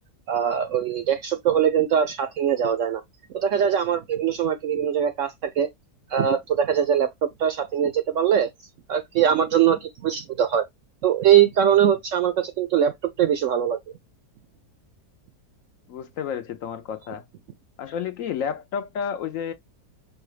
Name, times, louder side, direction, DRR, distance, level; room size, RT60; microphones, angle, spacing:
voice 1, 0.3-3.0 3.3-5.7 6.1-7.1 7.4-8.5 8.9-10.7 11.0-14.0, right 9 dB, 70° right, 0.7 m, -22 dB
voice 2, 15.9-17.2 17.8-19.5, left 7 dB, 70° left, 0.8 m, -31 dB
5.3 x 2.3 x 3.2 m
omnidirectional pair, 1.7 m